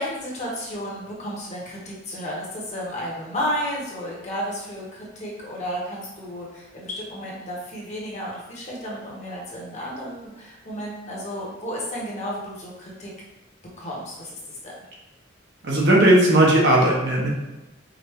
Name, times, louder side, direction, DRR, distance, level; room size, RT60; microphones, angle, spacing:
voice 1, 0.0-13.1 13.8-14.7, equal, 35° left, -4 dB, 1.1 m, -32 dB
voice 2, 15.6-17.3, right 1 dB, 60° right, -3 dB, 1.0 m, -17 dB
5.0 x 2.6 x 3.2 m, 1.0 s
head